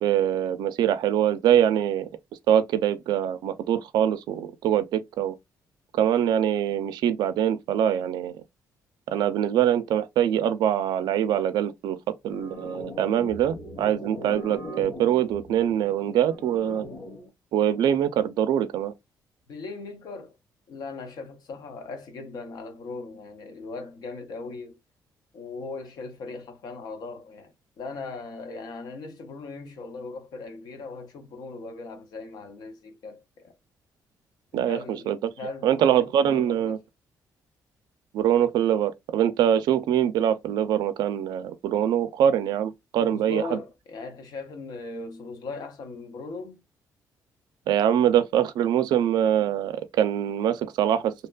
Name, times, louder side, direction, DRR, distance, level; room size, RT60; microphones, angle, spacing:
voice 1, 0.0-2.1 2.5-5.3 5.9-8.3 9.1-12.0 12.2-16.9 17.5-18.9 34.5-34.8 35.1-35.2 35.6-36.8 38.1-43.6 47.7-51.1, right 10 dB, 85° right, 0.4 m, -23 dB
sound 1, 12.3-17.3, equal, 30° left, 1.0 m, -40 dB
voice 2, 19.5-20.4 20.7-24.8 25.3-33.5 34.7-36.8 43.0-46.6, left 3 dB, 70° left, 0.7 m, -39 dB
2.8 x 2.2 x 2.3 m
cardioid pair, 145°, 7 cm